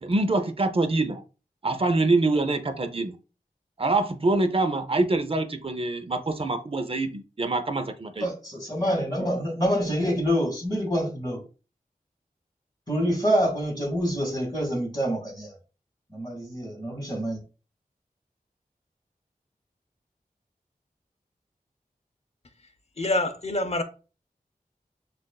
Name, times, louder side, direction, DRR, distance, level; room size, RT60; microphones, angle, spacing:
voice 1, 0.0-1.2 1.6-3.2 3.8-8.3, right 2 dB, 40° right, 0.6 m, -25 dB
voice 2, 8.2-11.4 12.9-15.5 16.1-17.4, equal, 25° left, 2.1 m, -26 dB
voice 3, 23.0-23.8, left 1 dB, 45° left, 0.7 m, -26 dB
6.2 x 2.5 x 2.3 m
wide cardioid pair, 40°, 15 cm